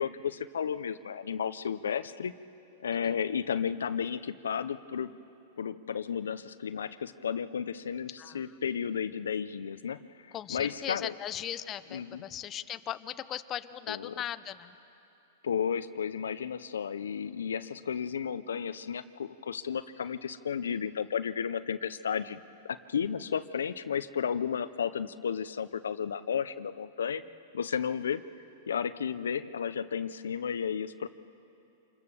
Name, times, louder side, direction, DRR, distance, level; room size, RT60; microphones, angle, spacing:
voice 1, 0.0-2.3 2.8-5.1 5.6-11.1 11.9-12.2 13.9-14.1 15.4-27.2 27.5-28.2 28.7-31.1, left 7 dB, 90° left, 13 dB, 0.6 m, -33 dB
voice 2, 10.3-14.7, left 11 dB, 30° left, 12 dB, 0.8 m, -38 dB
26.5 x 22.0 x 7.0 m, 2.8 s
hypercardioid pair, 125°, 0 cm